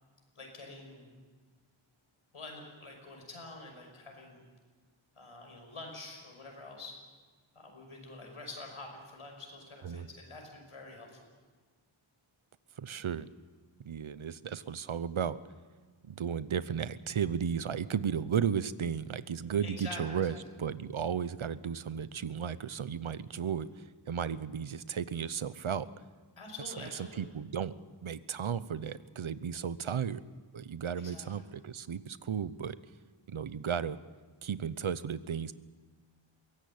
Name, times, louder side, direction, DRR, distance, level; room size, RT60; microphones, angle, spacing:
voice 1, 0.4-1.1 2.3-4.4 5.2-7.0 7.5-11.3 19.6-20.4 26.4-27.3 31.0-31.4, left 2 dB, 90° left, 2 dB, 5.8 m, -47 dB
voice 2, 12.8-13.3 13.8-15.4 16.0-25.9 26.8-27.8 28.0-30.2 30.5-32.8 33.3-34.0 34.4-35.6, right 7 dB, 70° right, 16 dB, 0.9 m, -34 dB
22.5 x 17.0 x 8.7 m, 1.4 s
wide cardioid pair, 75°, 49 cm